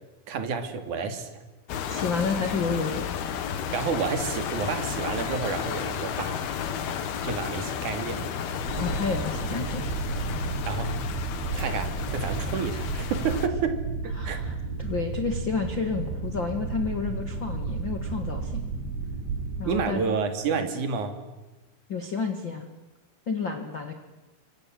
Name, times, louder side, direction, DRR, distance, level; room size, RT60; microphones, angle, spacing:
voice 1, 0.3-1.4 3.7-6.4 7.2-8.3 10.7-10.9 11.5-14.4 19.7-21.2, right 5 dB, 45° right, 7 dB, 3.2 m, -30 dB
sound 1, 1.7-13.5, left 8 dB, 60° left, 3.2 m, -32 dB
voice 2, 1.9-3.0 8.8-9.9 14.2-14.5 14.8-18.6 19.6-20.0 21.9-22.7 23.3-23.9, left 4 dB, 85° left, 6 dB, 1.0 m, -30 dB
sound 2, 8.6-19.9, right 4 dB, 65° right, 5.0 m, -32 dB
28.5 x 25.0 x 7.8 m, 1.1 s
omnidirectional pair, 5.8 m